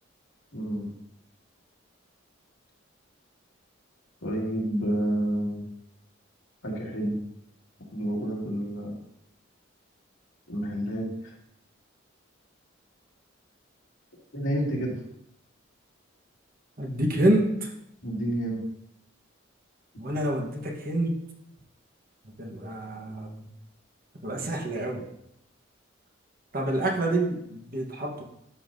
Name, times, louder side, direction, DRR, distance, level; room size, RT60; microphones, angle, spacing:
voice 1, 0.5-0.9 4.2-5.7 6.6-7.2 7.9-9.0 10.5-11.1 14.3-14.9 18.0-18.6, right 1 dB, 80° left, -4 dB, 2.4 m, -29 dB
voice 2, 16.8-17.7 20.0-21.2 22.2-23.3 24.2-25.1 26.5-28.2, right 1 dB, 45° right, 1 dB, 1.3 m, -27 dB
12.5 x 5.6 x 2.8 m, 0.76 s
head